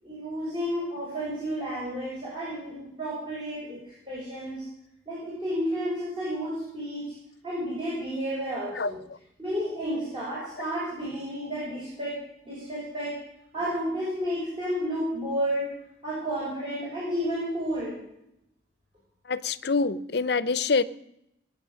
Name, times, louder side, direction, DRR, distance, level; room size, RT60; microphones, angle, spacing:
voice 1, 0.0-4.6 5.1-7.1 7.4-9.0 9.4-13.2 13.5-15.7 16.0-18.0, equal, 30° right, 6.5 m, -31 dB
voice 2, 19.3-20.8, left 4 dB, 65° left, 0.7 m, -25 dB
20.0 x 9.6 x 6.5 m
head